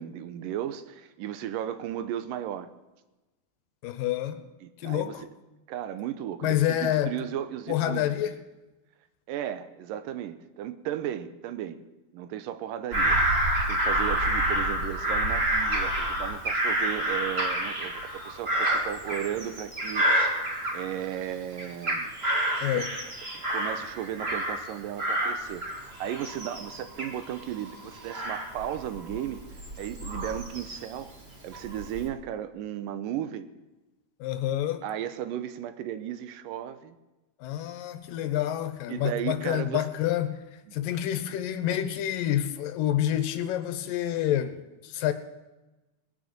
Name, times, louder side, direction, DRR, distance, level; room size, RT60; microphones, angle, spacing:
voice 1, 0.0-2.7 4.6-5.2 5.7-8.0 9.3-11.8 12.1-20.2 20.7-22.1 22.5-22.9 23.5-29.5 29.8-31.1 31.4-33.5 34.8-37.0 38.9-39.9, right 11 dB, 80° right, 11 dB, 2.5 m, -35 dB
voice 2, 3.8-4.4 4.8-5.2 6.4-7.1 7.7-8.3 22.6-22.9 34.2-34.8 37.4-40.4 40.7-44.6 44.8-45.1, left 12 dB, 85° left, 10 dB, 2.6 m, -28 dB
Bird vocalization bird call bird song / Crow, 12.9-21.2 21.6-24.7 25.0-31.0 31.5-32.1, right 1 dB, 30° right, 1.3 m, -28 dB
19.0 x 6.6 x 8.7 m, 1.1 s
omnidirectional pair, 3.9 m